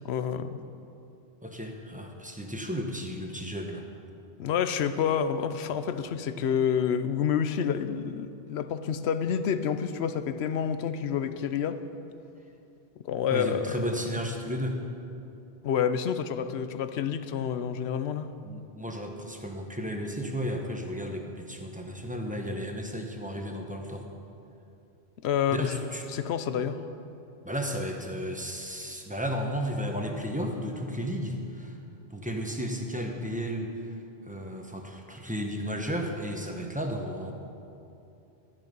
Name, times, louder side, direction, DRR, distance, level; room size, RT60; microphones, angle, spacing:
voice 1, 0.1-0.6 4.4-11.8 13.0-13.8 15.6-18.3 25.2-25.8 26.1-26.8, left 8 dB, 80° left, 11 dB, 0.9 m, -28 dB
voice 2, 1.4-3.8 13.3-14.8 18.4-24.0 25.5-26.0 27.4-31.8 32.1-33.9 34.2-37.3, equal, 10° right, 2 dB, 1.0 m, -33 dB
12.5 x 9.8 x 5.3 m, 2.8 s
omnidirectional pair, 1.1 m